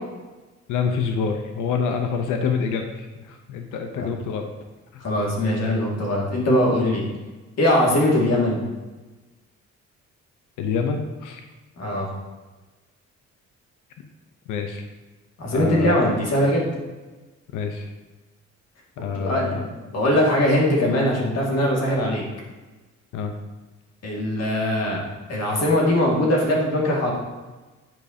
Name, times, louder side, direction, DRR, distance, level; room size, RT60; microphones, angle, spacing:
voice 1, 0.7-4.5 10.6-11.4 14.5-14.8 15.5-15.9 17.5-17.9 19.0-19.7 23.1-23.3, left 5 dB, 85° left, 5 dB, 0.8 m, -26 dB
voice 2, 5.0-7.0 7.6-8.6 11.8-12.1 15.4-16.7 19.1-22.2 24.0-25.0 25.3-27.1, left 1 dB, 55° left, -2 dB, 2.0 m, -21 dB
9.3 x 4.9 x 2.8 m, 1.2 s
cardioid pair, 90°, 30 cm